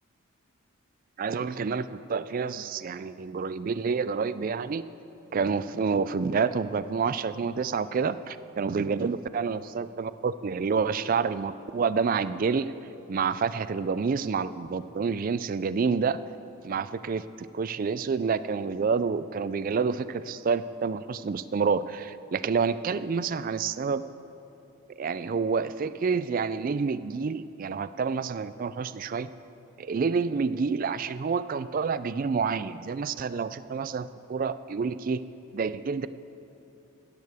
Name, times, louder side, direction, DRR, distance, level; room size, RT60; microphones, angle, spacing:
voice 1, 1.2-4.8 5.3-12.7 13.1-16.2 16.6-24.0 25.0-29.3 29.8-35.2 35.5-36.1, right 5 dB, 40° right, 14 dB, 0.3 m, -28 dB
16.5 x 13.0 x 3.5 m, 2.8 s
head